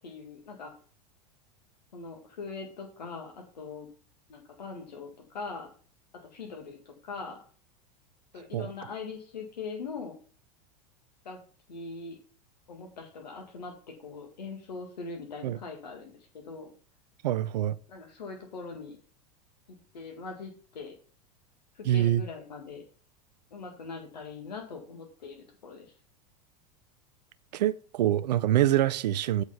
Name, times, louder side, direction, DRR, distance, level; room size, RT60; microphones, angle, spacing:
voice 1, 0.0-0.7 1.9-3.9 4.3-5.7 6.3-7.4 8.3-10.2 11.2-11.4 11.7-12.2 12.7-13.7 14.0-16.7 17.9-19.0 19.7-20.9 21.7-22.8 23.5-25.9, left 4 dB, 85° left, 1.8 m, -41 dB
voice 2, 17.2-17.8 21.9-22.2 27.5-29.4, right 12 dB, 75° right, 0.5 m, -25 dB
8.1 x 4.6 x 5.6 m
hypercardioid pair, 95°, 21 cm